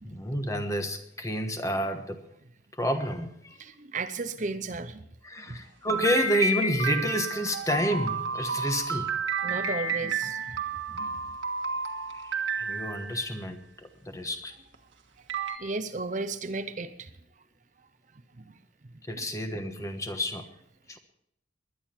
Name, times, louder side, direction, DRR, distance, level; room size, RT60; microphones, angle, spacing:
voice 1, 0.0-2.2 2.7-3.6 5.2-9.1 12.1-14.6 19.0-20.5 20.9-21.0, equal, 15° left, 7 dB, 1.2 m, -30 dB
voice 2, 3.6-5.0 5.5-5.6 9.4-10.6 10.9-11.2 15.6-17.1 18.4-18.5, right 3 dB, 40° right, 10 dB, 0.7 m, -34 dB
sound 1, 5.9-13.3 14.7-14.8 15.3-15.6, right 4 dB, 75° right, 1.6 m, -31 dB
20.0 x 11.0 x 4.5 m, 0.72 s
head